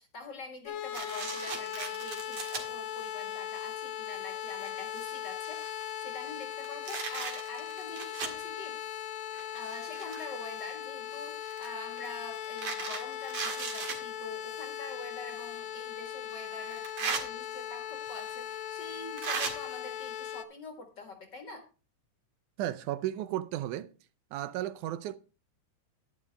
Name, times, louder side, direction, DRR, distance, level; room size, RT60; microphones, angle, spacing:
voice 1, 0.0-8.8 9.5-21.7, left 3 dB, 40° left, 1.8 m, -46 dB
sound 1, 0.7-20.4, left 10 dB, 65° left, 2.2 m, -39 dB
sound 2, 0.9-2.6 3.3-3.4 4.1-4.2 4.5-5.9 6.4-8.4 9.3-10.4 11.4-14.0 15.3-15.4 16.7-17.2 18.3-18.4 19.2-19.5, right 5 dB, 60° right, 2.9 m, -37 dB
voice 2, 22.6-23.9 24.3-25.2, right 13 dB, 80° right, 2.1 m, -34 dB
11.0 x 10.5 x 3.3 m
omnidirectional pair, 3.6 m